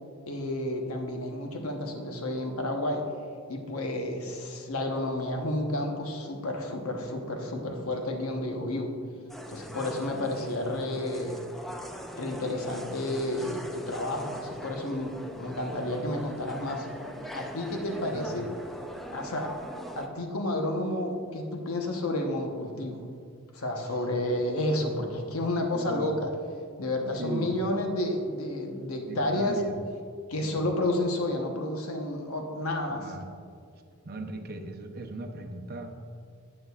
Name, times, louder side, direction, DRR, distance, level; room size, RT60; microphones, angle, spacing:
voice 1, 0.3-3.0 3.5-8.9 9.5-11.4 12.2-16.9 17.3-18.5 19.1-19.5 19.9-23.1 23.5-26.3 26.8-29.6 30.3-33.0, left 1 dB, 75° left, 2 dB, 1.1 m, -31 dB
sound 1, 9.3-20.1, equal, ahead, 0.5 m, -41 dB
voice 2, 18.0-18.4 23.8-24.0 25.7-26.1 27.2-27.5 29.0-29.8 30.4-30.7 32.9-33.3 34.0-35.9, right 1 dB, 45° right, 4 dB, 0.7 m, -38 dB
11.0 x 8.7 x 2.4 m, 2.2 s
head